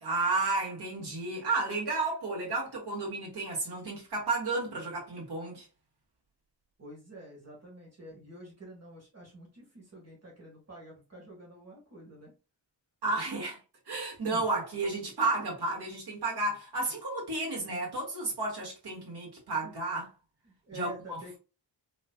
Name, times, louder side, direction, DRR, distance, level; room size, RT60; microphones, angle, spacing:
voice 1, 0.0-5.7 13.0-13.6 13.9-20.1 20.7-21.2, right 3 dB, 65° right, 1.8 m, -32 dB
voice 2, 6.8-12.3 14.3-14.4 20.7-21.4, right 1 dB, 35° right, 1.4 m, -48 dB
4.2 x 3.0 x 2.2 m
wide cardioid pair, 160°, 42 cm